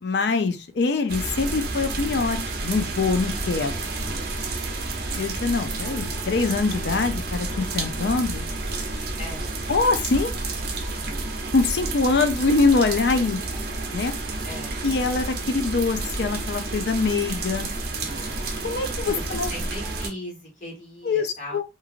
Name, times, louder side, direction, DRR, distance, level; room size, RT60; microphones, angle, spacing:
voice 1, 0.0-3.8 5.2-8.5 9.7-10.3 11.5-13.4 13.9-14.1 14.8-17.7 18.6-19.5 21.0-21.6, left 4 dB, 70° left, 0.5 m, -24 dB
sound 1, 1.1-20.1, right 2 dB, 60° right, 0.7 m, -30 dB
sound 2, 1.2-20.1, right 2 dB, 20° right, 0.8 m, -46 dB
voice 2, 9.2-9.6 14.4-14.8 18.1-19.2 19.5-21.6, left 1 dB, 45° left, 1.3 m, -39 dB
3.0 x 2.5 x 2.4 m
head